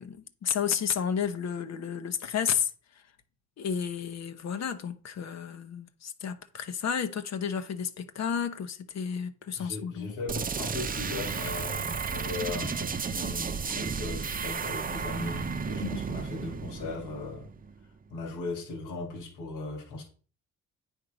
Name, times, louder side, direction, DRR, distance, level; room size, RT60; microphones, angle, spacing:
voice 1, 0.0-3.0 3.6-10.1 15.8-16.0, left 7 dB, 60° left, 1.1 m, -32 dB
voice 2, 9.6-17.5 18.1-20.0, left 3 dB, 85° left, 2.8 m, -38 dB
sound 1, 10.3-17.9, right 5 dB, 30° right, 0.7 m, -33 dB
9.3 x 4.6 x 5.1 m
cardioid pair, 90°, 30 cm